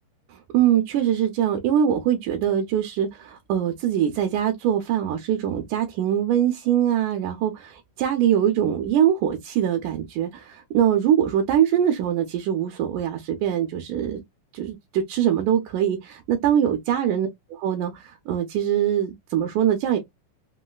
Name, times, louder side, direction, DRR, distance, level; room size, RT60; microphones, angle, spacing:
voice 1, 0.3-14.2 14.5-17.3 17.6-20.0, right 10 dB, 75° right, 2.1 m, -23 dB
5.5 x 2.0 x 2.2 m
omnidirectional pair, 3.9 m